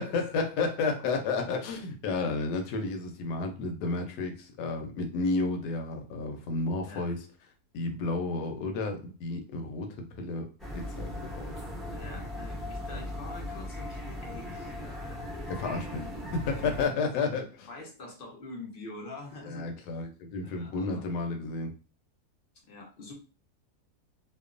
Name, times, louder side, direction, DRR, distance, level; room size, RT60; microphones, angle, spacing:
voice 1, 0.0-7.2 7.7-9.9 10.2-10.5 10.7-11.1 15.5-16.0 16.3-17.4 19.4-21.7, left 3 dB, 85° left, 4 dB, 1.2 m, -31 dB
sound 1, 10.6-16.9, left 1 dB, ahead, 0.3 m, -38 dB
voice 2, 11.9-15.3 15.9-17.0 17.7-19.7 20.4-21.1 22.6-23.1, left 2 dB, 55° left, 0 dB, 0.6 m, -45 dB
2.9 x 2.1 x 2.4 m, 0.33 s
omnidirectional pair, 1.7 m